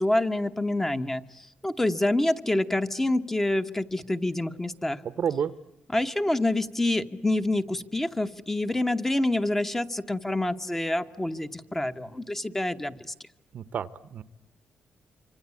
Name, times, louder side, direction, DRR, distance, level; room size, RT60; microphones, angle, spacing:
voice 1, 0.0-5.0 5.9-13.1, left 1 dB, 10° left, 9 dB, 1.1 m, -27 dB
voice 2, 5.0-5.5 13.5-14.2, right 7 dB, 55° right, 16 dB, 1.0 m, -30 dB
26.0 x 25.5 x 8.4 m, 0.87 s
wide cardioid pair, 155°, 3 cm